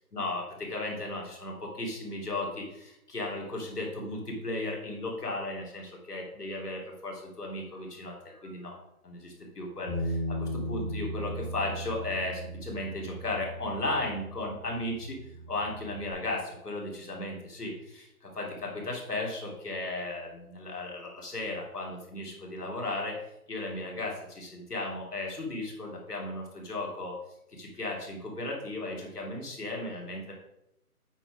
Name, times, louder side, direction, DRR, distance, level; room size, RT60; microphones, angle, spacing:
voice 1, 0.1-8.8 9.0-15.2 15.5-23.2 23.5-27.2 27.5-30.3, left 2 dB, 85° left, -1 dB, 3.2 m, -35 dB
Bass guitar, 9.9-16.1, equal, 10° left, 1.3 m, -37 dB
8.8 x 4.4 x 5.0 m, 0.83 s
hypercardioid pair, 180°, 46 cm